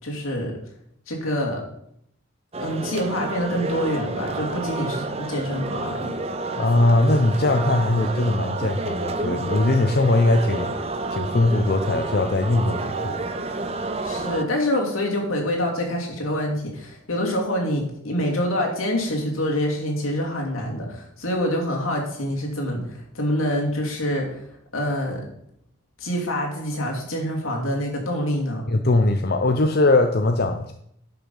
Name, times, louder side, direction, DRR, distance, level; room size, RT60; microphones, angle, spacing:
voice 1, 0.0-0.5 1.1-1.6 2.6-6.1 14.0-24.4 24.7-25.2 26.0-28.6, equal, 80° left, -1 dB, 2.8 m, -26 dB
sound 1, 2.5-14.4, right 3 dB, 30° right, 0.7 m, -29 dB
voice 2, 6.6-10.7 11.1-13.2 28.7-30.7, left 2 dB, 50° left, 5 dB, 0.6 m, -20 dB
10.5 x 6.0 x 5.5 m, 0.72 s
head